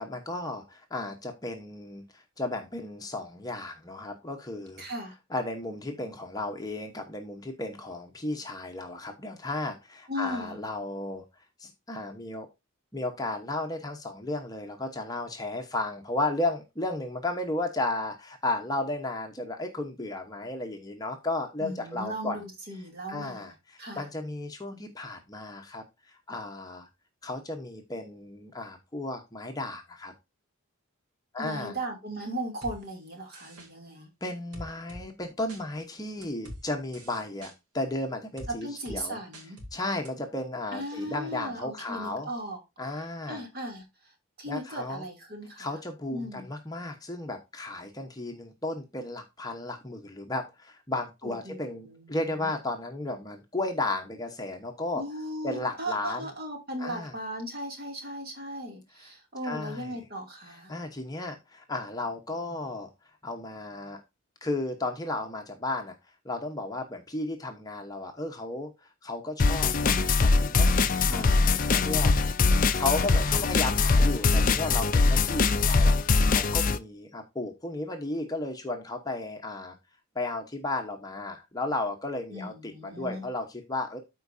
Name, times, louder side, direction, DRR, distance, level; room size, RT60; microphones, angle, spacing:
voice 1, 0.0-4.8 5.3-11.2 11.6-12.5 12.9-22.4 23.1-26.9 27.2-30.1 31.3-31.8 34.2-39.2 39.7-42.3 42.8-43.4 44.5-45.0 45.6-55.0 55.4-56.3 56.8-57.1 59.4-59.9 60.7-62.9 63.2-64.0 64.4-65.9 66.2-70.7 71.1-72.1 72.7-76.0 76.3-79.8 80.1-84.0, left 2 dB, 15° left, 1.0 m, -34 dB
voice 2, 4.8-5.1 10.1-10.6 21.6-23.5 23.8-24.1 31.4-34.1 38.6-39.6 40.7-42.6 42.9-45.8 46.1-46.4 51.2-52.5 54.9-60.7 71.0-71.4 82.3-83.3, equal, 45° right, 2.7 m, -37 dB
sound 1, 32.6-32.8 33.3-33.7 34.5-35.0 35.5-35.6 36.2-36.6 36.9-37.5 38.4-38.5 38.9-39.0 39.3-39.7 40.1-40.2, equal, 85° right, 2.7 m, -43 dB
sound 2, 69.4-76.8, left 4 dB, 35° left, 0.5 m, -22 dB
13.0 x 4.6 x 2.6 m
head